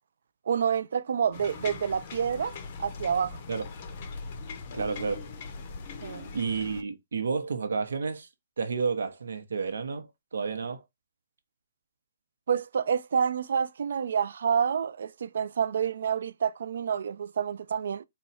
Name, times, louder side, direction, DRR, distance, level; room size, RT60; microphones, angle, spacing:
voice 1, 0.5-3.4 6.0-6.3 12.5-18.0, right 7 dB, 55° right, 0.3 m, -28 dB
sound 1, 1.3-6.8, left 4 dB, 25° left, 0.5 m, -41 dB
voice 2, 4.7-5.3 6.3-8.3 8.6-10.8, right 5 dB, 90° right, 0.8 m, -31 dB
4.2 x 2.3 x 4.1 m
hypercardioid pair, 180°, 0 cm